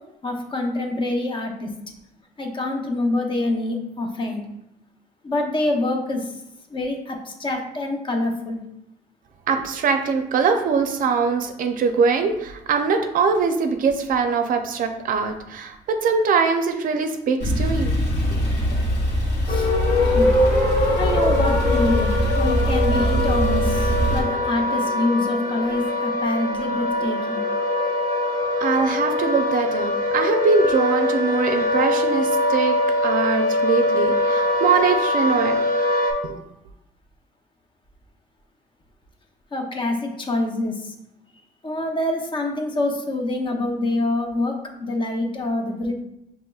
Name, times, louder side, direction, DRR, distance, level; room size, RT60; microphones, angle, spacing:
voice 1, 0.2-1.7 2.4-4.4 5.2-6.4 6.7-8.6 19.5-19.7 20.0-20.3 20.9-27.4 39.5-40.9 41.6-45.9, left 2 dB, 30° left, 2 dB, 0.7 m, -26 dB
voice 2, 9.5-17.9 18.3-18.4 28.6-32.7 33.0-35.6 36.2-36.4, right 5 dB, 55° right, 6 dB, 0.5 m, -22 dB
Male speech man speaking / Car / Idling, 17.4-24.2, right 1 dB, 80° left, 1.5 m, -22 dB
sound 1, 19.5-36.1, left 2 dB, 55° left, 1.1 m, -22 dB
5.7 x 3.0 x 2.3 m, 0.84 s
cardioid pair, 110°, 17 cm